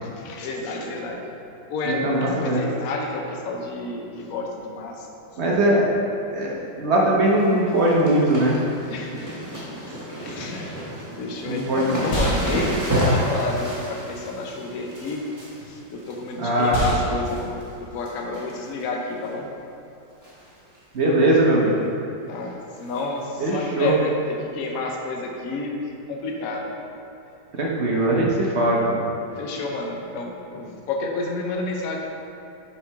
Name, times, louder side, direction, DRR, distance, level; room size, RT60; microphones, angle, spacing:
voice 1, 0.0-1.3 1.7-5.1 8.9-9.3 9.8-10.8 11.2-15.2 15.6-19.5 22.3-24.1 24.4-26.7 29.3-32.0, left 3 dB, 55° left, 0 dB, 1.1 m, -30 dB
voice 2, 1.8-2.6 5.4-5.8 6.3-8.5 11.5-11.8 16.4-16.8 20.9-21.8 23.4-23.9 27.5-29.1, right 1 dB, 45° right, -3 dB, 0.9 m, -20 dB
sound 1, 7.1-7.4 7.7-16.9 17.2-17.7 18.0-18.8 19.2-19.3 20.2-20.5 20.7-20.8 21.2-21.3 22.9-23.0 23.8-23.9, equal, 10° right, 1.1 m, -30 dB
sound 2, 12.0-20.4, equal, 80° left, 2.2 m, -32 dB
7.1 x 4.7 x 4.7 m, 2.7 s
omnidirectional pair, 2.1 m